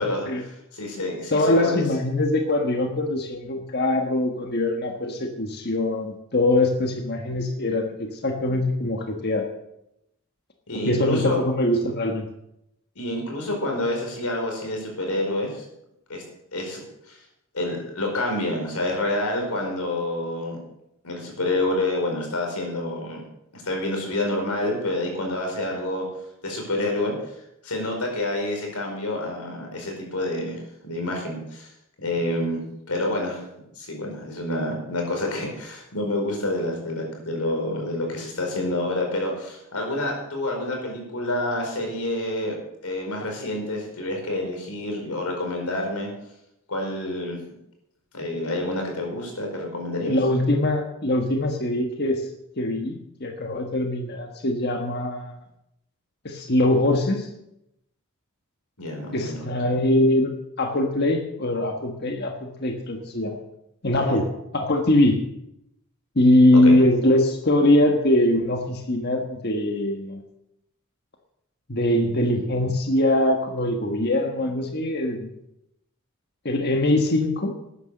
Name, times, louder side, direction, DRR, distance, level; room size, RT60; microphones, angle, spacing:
voice 1, 0.0-1.8 10.7-11.4 12.9-15.6 16.1-16.2 16.5-16.8 17.1-17.2 17.5-20.6 21.0-23.2 23.5-26.0 26.4-27.1 27.6-31.7 32.0-33.4 33.8-42.6 42.8-46.1 46.7-47.4 48.1-50.1 58.8-59.4 59.6-59.8 63.9-64.2 66.6-66.8, left 1 dB, 90° left, 1 dB, 4.8 m, -28 dB
voice 2, 1.3-9.5 10.7-12.3 50.1-52.2 52.6-55.3 56.2-57.3 59.1-60.3 60.6-63.4 63.8-64.3 64.5-65.2 66.1-70.2 71.7-75.3 76.4-77.5, left 1 dB, 45° left, 3 dB, 1.5 m, -22 dB
13.0 x 10.0 x 6.6 m, 0.82 s
head